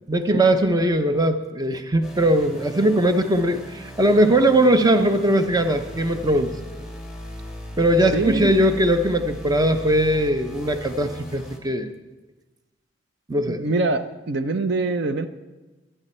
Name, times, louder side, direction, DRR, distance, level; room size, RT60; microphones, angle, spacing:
voice 1, 0.1-6.5 7.8-11.9 13.3-13.6, right 1 dB, 20° right, 8 dB, 0.7 m, -20 dB
sound 1, 2.0-11.6, equal, 5° right, 2.1 m, -38 dB
voice 2, 8.1-8.5 13.5-15.3, right 2 dB, 60° right, 10 dB, 0.7 m, -24 dB
23.0 x 10.0 x 4.3 m, 1.2 s
head